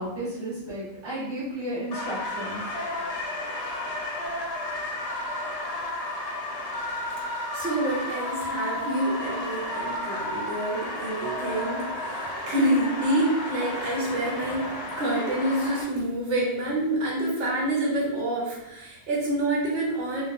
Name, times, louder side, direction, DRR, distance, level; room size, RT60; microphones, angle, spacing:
voice 1, 0.0-2.6, right 1 dB, 10° right, -11 dB, 1.2 m, -33 dB
sound 1, 1.9-15.8, left 1 dB, 70° left, 0.3 m, -32 dB
voice 2, 7.5-20.2, right 1 dB, 80° right, -3 dB, 1.0 m, -27 dB
2.9 x 2.2 x 2.5 m, 0.93 s
omnidirectional pair, 1.2 m